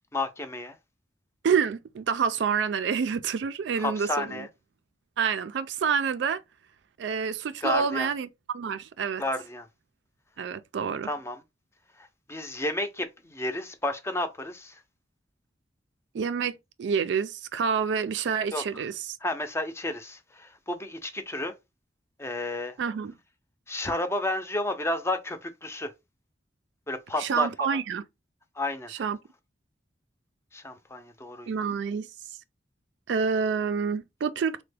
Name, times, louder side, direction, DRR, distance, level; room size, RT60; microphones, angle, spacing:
voice 1, 0.1-0.8 3.8-4.5 7.6-8.1 9.2-9.7 11.0-11.4 12.0-14.8 18.5-18.6 19.2-21.5 22.2-22.7 23.7-25.9 26.9-27.8 28.6-28.9 30.5-31.5, left 2 dB, 15° left, 0.5 m, -31 dB
voice 2, 1.4-4.5 5.2-6.4 7.0-8.3 8.5-9.2 10.4-11.1 16.1-19.2 22.8-23.1 27.2-28.0 28.9-29.2 31.5-32.1 33.1-34.6, right 6 dB, 90° right, 0.4 m, -28 dB
3.3 x 2.1 x 3.3 m
head